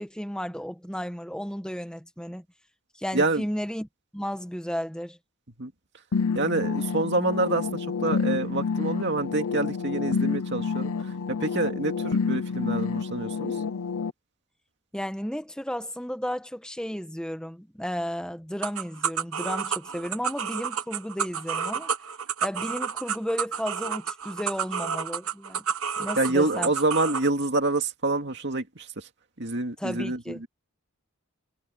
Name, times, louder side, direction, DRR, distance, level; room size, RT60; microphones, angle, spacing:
voice 1, 0.0-2.4 3.0-3.9 4.1-5.2 14.9-21.9 22.4-25.6 26.0-26.7 29.8-30.4, equal, 5° left, 1.4 m, -33 dB
sound 1, 6.1-14.1, left 5 dB, 90° left, 0.7 m, -29 dB
voice 2, 6.3-13.6 26.2-29.1 29.4-30.5, right 2 dB, 55° right, 2.3 m, -27 dB
sound 2, 18.6-27.3, right 7 dB, 80° right, 1.3 m, -30 dB
head